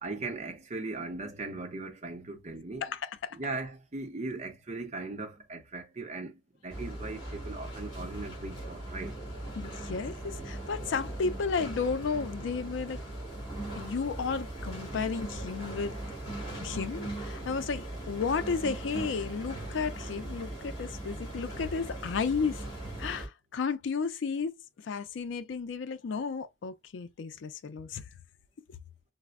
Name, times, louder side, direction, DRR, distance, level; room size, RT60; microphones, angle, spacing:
voice 1, 0.0-2.8 3.3-9.1, right 3 dB, 35° right, 0.6 m, -38 dB
voice 2, 2.8-3.4 9.6-13.1 13.8-15.9 16.6-22.6 23.0-28.0, left 5 dB, 80° left, 0.4 m, -33 dB
sound 1, 6.7-23.3, right 1 dB, 30° left, 1.8 m, -39 dB
4.2 x 2.0 x 2.4 m
head